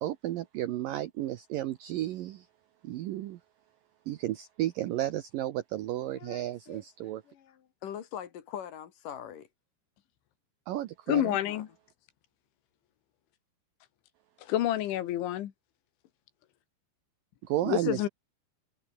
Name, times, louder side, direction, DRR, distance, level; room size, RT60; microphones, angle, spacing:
voice 1, 0.0-2.5 2.8-3.4 4.1-7.2 10.7-11.4 17.4-18.1, right 14 dB, 85° right, 2.0 m, -33 dB
voice 2, 6.1-6.8 7.3-9.5 11.4-11.6, left 9 dB, 55° left, 3.1 m, -43 dB
voice 3, 11.1-11.7 14.5-15.5 17.7-18.1, left 13 dB, 90° left, 4.2 m, -28 dB
omnidirectional pair, 5.2 m